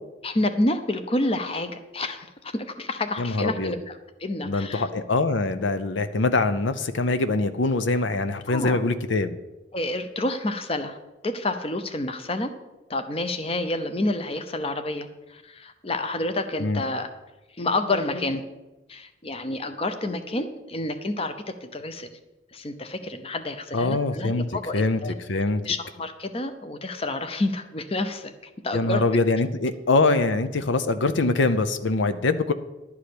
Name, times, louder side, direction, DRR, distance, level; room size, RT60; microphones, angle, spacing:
voice 1, 0.2-4.9 8.5-8.8 9.7-11.0 11.2-12.5 12.9-17.1 17.6-18.4 18.9-22.1 22.5-25.1 25.6-28.3 28.6-29.0, left 2 dB, 30° left, 9 dB, 0.7 m, -29 dB
voice 2, 3.2-3.7 4.5-9.4 16.6-16.8 23.7-25.0 25.3-25.6 28.7-32.5, left 3 dB, 75° left, 11 dB, 0.6 m, -23 dB
11.5 x 4.9 x 8.5 m, 1.0 s
head